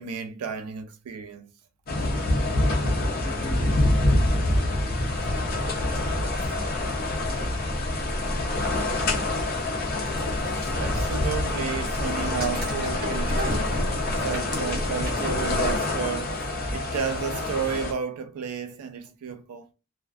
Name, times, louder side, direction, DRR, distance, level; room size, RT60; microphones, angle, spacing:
voice 1, 0.0-1.5 10.2-19.7, right 6 dB, 85° right, 0.3 m, -32 dB
sound 1, 1.9-17.9, left 2 dB, 40° left, 0.5 m, -26 dB
voice 2, 3.2-10.1, left 1 dB, 20° right, 1.3 m, -46 dB
sound 2, 3.8-15.8, equal, 40° right, 0.9 m, -34 dB
2.4 x 2.3 x 2.3 m
head